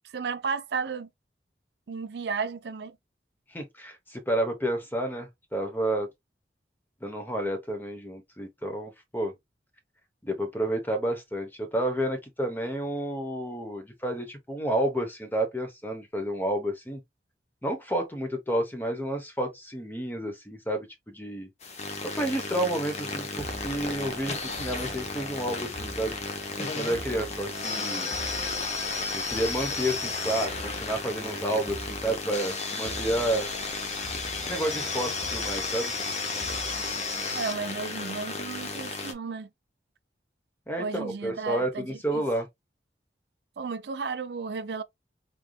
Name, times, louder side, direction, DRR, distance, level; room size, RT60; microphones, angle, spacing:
voice 1, 0.1-1.1 1.9-3.0 37.3-39.5 40.8-41.9 42.1-42.2 43.6-44.8, right 5 dB, 65° right, 0.4 m, -33 dB
voice 2, 3.5-6.1 7.0-9.3 10.2-17.0 17.6-21.5 22.0-26.1 26.6-28.1 29.1-33.5 34.5-35.9 40.7-42.5, right 1 dB, 10° left, 0.9 m, -30 dB
sound 1, 21.6-39.1, left 3 dB, 40° left, 0.8 m, -33 dB
sound 2, 23.3-37.4, equal, 20° right, 1.4 m, -44 dB
3.8 x 3.4 x 2.2 m
head